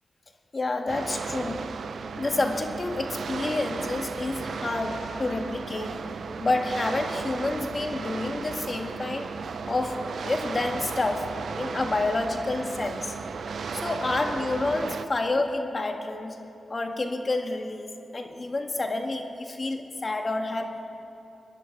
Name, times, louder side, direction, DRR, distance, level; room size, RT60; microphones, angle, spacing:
voice 1, 0.5-1.8 2.2-6.1 6.4-9.3 9.7-13.1 13.7-16.4 16.7-20.8, left 2 dB, 45° left, 5 dB, 1.6 m, -29 dB
sound 1, 0.9-15.1, right 5 dB, 75° right, 0.6 m, -35 dB
23.5 x 10.5 x 4.7 m, 2.9 s
cardioid pair, 50°, 0 cm